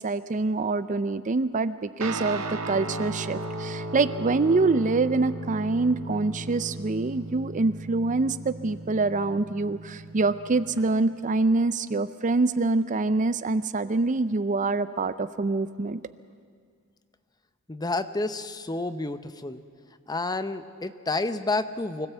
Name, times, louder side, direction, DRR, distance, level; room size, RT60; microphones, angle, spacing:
voice 1, 0.0-16.0, right 3 dB, 35° right, 14 dB, 0.5 m, -25 dB
Guitar, 2.0-10.8, right 2 dB, 70° right, 1.4 m, -36 dB
voice 2, 17.7-19.6 20.1-22.1, left 2 dB, 20° left, 11 dB, 0.7 m, -30 dB
25.0 x 16.5 x 8.1 m, 2.1 s
head